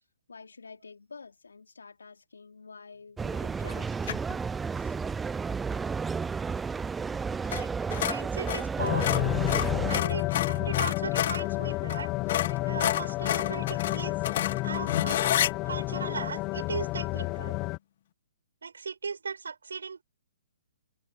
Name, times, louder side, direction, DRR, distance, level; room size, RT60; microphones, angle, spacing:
voice 1, 0.3-4.0 4.8-4.9, left 4 dB, 90° left, 3.8 m, -48 dB
sound 1, 3.2-10.0, right 5 dB, 10° right, 0.4 m, -32 dB
sound 2, 4.0-4.4 7.5-7.7 7.9-11.5 11.9-12.0 12.3-15.5, left 11 dB, 55° left, 1.7 m, -29 dB
voice 2, 8.0-9.4 9.9-12.1 12.5-14.2 14.6-15.3 15.6-17.6 18.6-20.0, right 5 dB, 80° right, 7.4 m, -37 dB
sound 3, 8.8-17.8, left 20 dB, 30° left, 0.8 m, -30 dB
hypercardioid pair, 140°, 0 cm